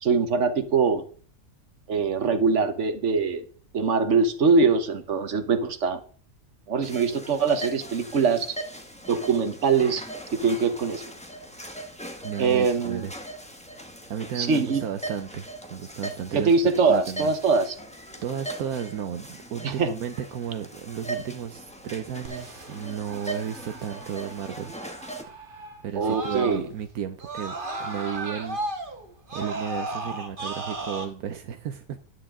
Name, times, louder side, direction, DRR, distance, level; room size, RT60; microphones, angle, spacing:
voice 1, 0.0-1.0 1.9-3.4 3.7-6.0 6.7-8.6 9.1-10.0 10.3-11.1 12.4-13.1 14.4-14.8 16.3-17.7 19.6-19.9 25.9-26.7, right 5 dB, 55° right, 1.3 m, -23 dB
sound 1, 6.8-25.2, right 1 dB, 5° left, 1.0 m, -40 dB
voice 2, 12.2-13.1 14.1-16.5 16.9-17.3 18.2-24.8 25.8-27.5 27.8-28.6 29.3-32.0, right 8 dB, 85° right, 1.3 m, -33 dB
Screaming, 22.2-26.9 27.2-31.0, right 2 dB, 35° right, 1.6 m, -36 dB
11.0 x 9.8 x 3.7 m
omnidirectional pair, 1.5 m